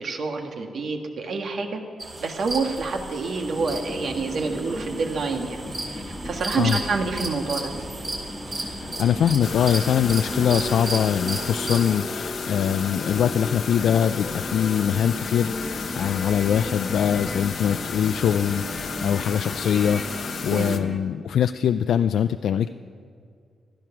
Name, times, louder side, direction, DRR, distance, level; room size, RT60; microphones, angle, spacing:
voice 1, 0.0-1.8 2.2-5.6 5.9-7.7 20.5-20.8, right 4 dB, 55° right, 4 dB, 1.6 m, -27 dB
sound 1, 2.0-12.0, right 2 dB, 30° right, 2.5 m, -35 dB
sound 2, 3.4-21.0, left 1 dB, 15° left, 1.0 m, -35 dB
voice 2, 8.5-15.5 16.0-22.7, left 9 dB, 80° left, 10 dB, 0.4 m, -23 dB
sound 3, 9.4-20.8, left 6 dB, 50° left, 0.8 m, -34 dB
15.5 x 13.0 x 5.9 m, 2.2 s
wide cardioid pair, 170°, 0 cm